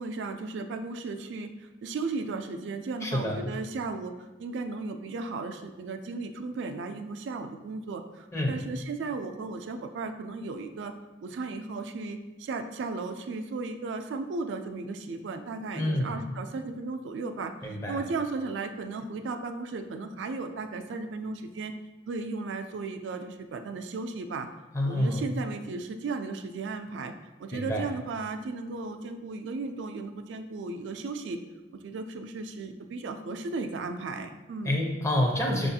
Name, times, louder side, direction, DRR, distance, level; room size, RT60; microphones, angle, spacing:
voice 1, 0.0-10.9 11.2-21.7 22.1-24.5 24.8-27.1 27.4-31.4 31.7-34.7, right 3 dB, 70° right, 7 dB, 0.3 m, -35 dB
voice 2, 3.0-3.4 8.3-8.6 15.8-16.2 17.6-18.0 24.7-25.2 27.5-27.9 34.6-35.7, left 1 dB, 15° left, 0 dB, 0.5 m, -27 dB
5.2 x 2.4 x 2.7 m, 1.2 s
head